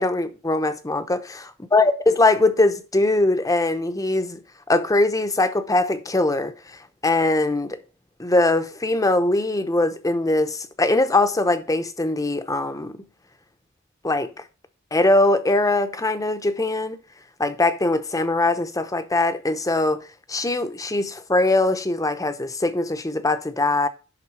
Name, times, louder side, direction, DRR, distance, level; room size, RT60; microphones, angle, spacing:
voice 1, 0.0-4.4 4.7-6.5 7.0-7.8 8.2-13.0 14.0-14.3 14.9-17.0 17.4-20.0 20.3-23.9, left 2 dB, 15° left, 0.8 m, -21 dB
11.0 x 3.9 x 5.9 m
head